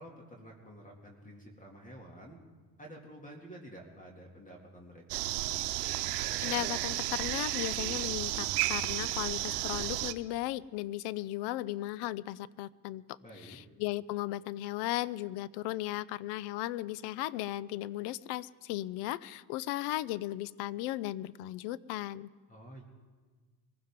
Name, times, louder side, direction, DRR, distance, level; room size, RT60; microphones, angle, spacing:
voice 1, 0.0-2.4 2.8-5.3 13.2-13.6 22.5-22.8, right 1 dB, 15° left, 0 dB, 2.5 m, -50 dB
sound 1, 5.1-10.1, right 16 dB, 90° right, 0.9 m, -33 dB
voice 2, 6.4-13.2 13.4-22.3, left 15 dB, 60° left, 20 dB, 0.7 m, -36 dB
23.5 x 15.5 x 3.7 m, 1.4 s
supercardioid pair, 120°, 46 cm